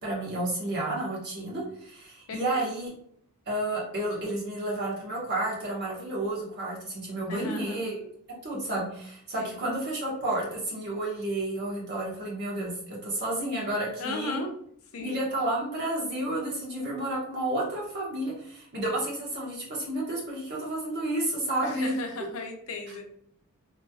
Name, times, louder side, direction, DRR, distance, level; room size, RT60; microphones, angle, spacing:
voice 1, 0.0-2.9 3.5-8.0 8.4-14.4 15.0-21.9 22.9-23.0, right 1 dB, 50° right, -4 dB, 1.2 m, -31 dB
voice 2, 2.3-2.6 7.3-7.8 9.4-9.6 14.0-14.5 14.9-15.2 21.6-23.1, left 2 dB, 70° left, 3 dB, 0.6 m, -36 dB
3.0 x 2.9 x 2.3 m, 0.67 s
head